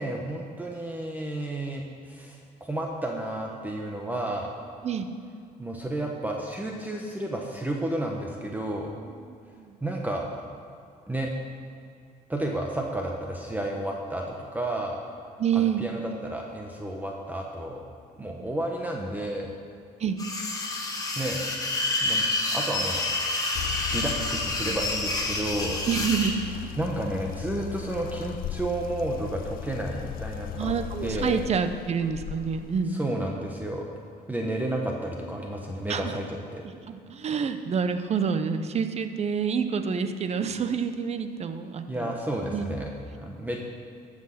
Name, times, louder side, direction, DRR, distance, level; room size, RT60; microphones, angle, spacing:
voice 1, 0.0-4.5 5.6-8.9 9.8-10.3 11.1-11.3 12.3-15.0 15.5-17.8 18.2-19.5 21.2-21.4 22.0-22.2 22.5-23.0 23.6-25.8 26.8-30.7 31.0-31.4 32.9-33.8 34.3-36.6 41.9-43.6, right 1 dB, 10° right, 0 dB, 1.0 m, -31 dB
voice 2, 9.3-9.8 15.4-15.8 18.2-18.5 20.0-20.2 25.9-26.7 30.5-33.1 35.9-36.2 36.9-42.2 42.4-42.7, right 6 dB, 40° right, 9 dB, 0.8 m, -28 dB
sound 1, 20.2-26.3, left 2 dB, 20° left, 1.7 m, -28 dB
sound 2, 23.5-32.8, left 13 dB, 60° left, 0.4 m, -38 dB
14.5 x 6.1 x 5.8 m, 2.4 s
cardioid pair, 110°, 17 cm